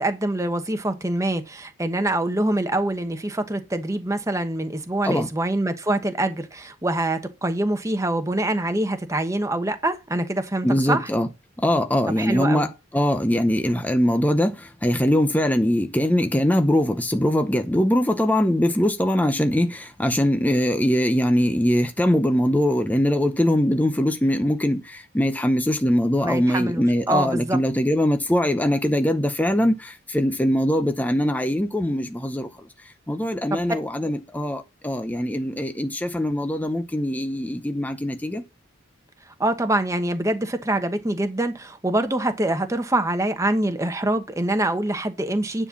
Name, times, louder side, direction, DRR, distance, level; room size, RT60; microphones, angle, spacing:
voice 1, 0.0-11.1 12.2-12.7 26.2-27.6 33.5-33.6 39.4-45.7, right 1 dB, 15° right, 1.1 m, -25 dB
voice 2, 10.6-11.3 11.6-32.5 32.8-38.4, equal, 10° left, 0.7 m, -22 dB
9.9 x 4.3 x 7.1 m
head